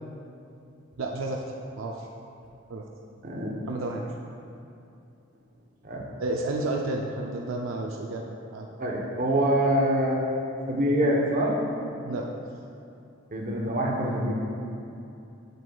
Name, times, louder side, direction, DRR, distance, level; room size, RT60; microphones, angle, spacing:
voice 1, 1.0-1.4 1.8-2.1 2.7-2.8 3.7-4.0 6.2-8.7 12.0-12.3, right 2 dB, 75° right, 0 dB, 0.4 m, -31 dB
voice 2, 3.2-3.6 5.8-6.0 8.8-10.2 10.7-11.6 13.3-14.3, right 1 dB, 45° right, -2 dB, 0.9 m, -25 dB
7.8 x 7.7 x 2.3 m, 2.7 s
head